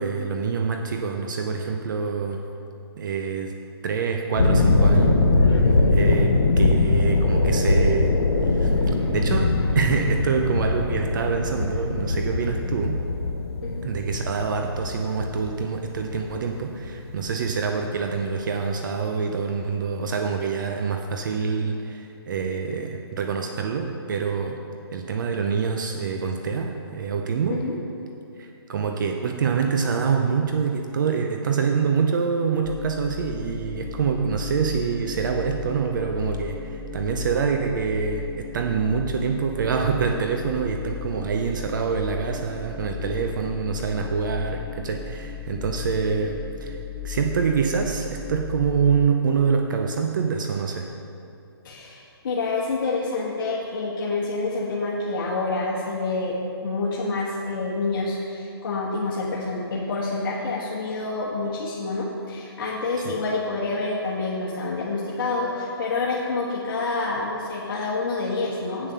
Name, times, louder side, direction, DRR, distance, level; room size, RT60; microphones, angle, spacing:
voice 1, 0.0-2.4 3.0-3.5 3.8-5.3 5.9-8.1 8.4-8.7 9.1-13.0 13.8-24.6 24.9-27.6 28.4-46.8 47.0-50.9 63.0-63.1, right 5 dB, 50° right, 3 dB, 0.7 m, -26 dB
sound 1, 4.3-16.9 17.2-17.6, left 2 dB, 90° left, 1.3 m, -21 dB
voice 2, 5.6-5.9 13.6-13.9 27.5-27.8 51.6-56.3 56.6-68.9, left 3 dB, 55° left, -6 dB, 1.5 m, -27 dB
sound 2, 32.6-49.1, left 8 dB, 20° left, 0.3 m, -36 dB
8.8 x 7.2 x 5.6 m, 2.6 s
hypercardioid pair, 145°, 13 cm